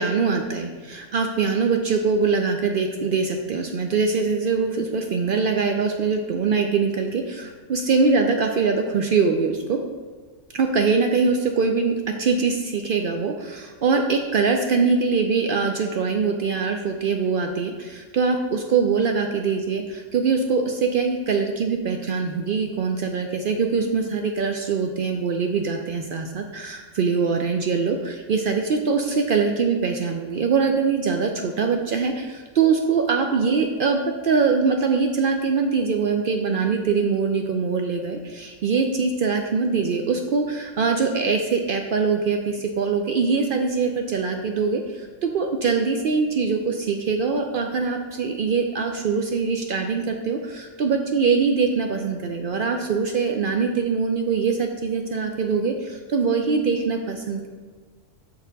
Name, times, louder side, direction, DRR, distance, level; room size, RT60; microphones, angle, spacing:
voice 1, 0.0-9.8 10.5-57.5, right 5 dB, 75° right, 4 dB, 0.4 m, -23 dB
6.9 x 4.2 x 3.9 m, 1.4 s
omnidirectional pair, 1.4 m